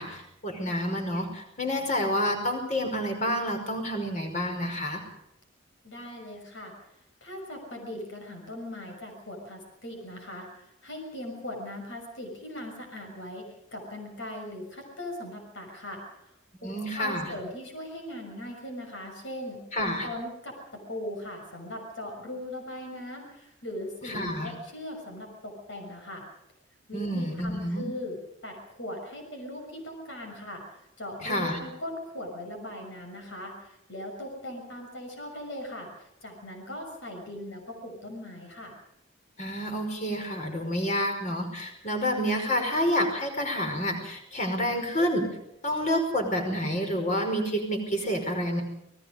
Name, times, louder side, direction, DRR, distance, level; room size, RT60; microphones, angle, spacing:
voice 1, 0.0-5.0 16.6-17.3 19.7-20.1 24.0-24.5 26.9-27.8 31.2-31.6 39.4-45.3 45.6-48.6, equal, 35° left, 4 dB, 5.3 m, -29 dB
voice 2, 5.8-6.7 7.2-16.0 16.6-16.7 17.0-19.6 20.0-26.3 26.9-28.2 28.4-30.6 31.0-38.7, left 1 dB, 60° left, 3 dB, 6.2 m, -39 dB
29.0 x 19.5 x 5.2 m, 0.81 s
head